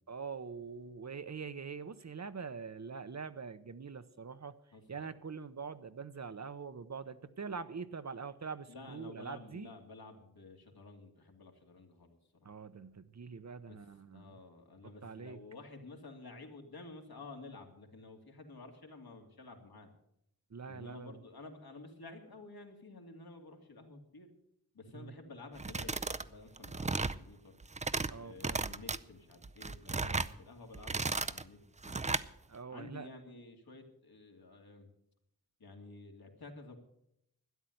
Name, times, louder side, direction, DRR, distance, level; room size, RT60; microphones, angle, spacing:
voice 1, 0.1-4.6 4.9-9.7 12.4-14.4 15.0-15.4 20.5-21.2 24.9-25.2 28.1-28.8 32.5-33.1, right 5 dB, 50° right, 12 dB, 0.8 m, -44 dB
voice 2, 4.7-5.0 8.7-12.5 13.7-13.8 14.1-19.9 20.7-24.3 24.7-27.5 28.2-31.6 31.8-32.1 32.7-34.9 35.6-36.8, left 3 dB, 80° left, 2 dB, 2.5 m, -52 dB
sound 1, 25.6-26.3 26.6-27.2 27.6-28.1 28.4-29.0 29.4-30.3 30.7-31.4 31.8-32.3, right 3 dB, 20° right, 0.5 m, -35 dB
12.5 x 10.0 x 7.9 m, 0.76 s
wide cardioid pair, 95°, 37 cm